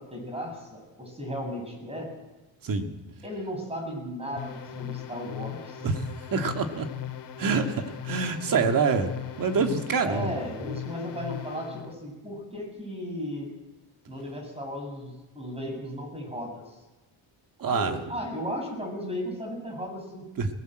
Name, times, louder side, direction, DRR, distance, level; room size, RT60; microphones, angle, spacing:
voice 1, 0.0-2.1 3.2-5.9 10.0-13.5 14.1-16.8 17.6-20.3, equal, 15° right, 2 dB, 7.3 m, -35 dB
sound 1, 4.4-11.9, left 11 dB, 65° left, 2.3 m, -38 dB
voice 2, 5.8-6.9 7.4-10.4 17.6-18.0 20.4-20.5, right 5 dB, 45° right, 5 dB, 2.4 m, -26 dB
20.5 x 18.0 x 7.9 m, 1.1 s
cardioid pair, 125°, 45 cm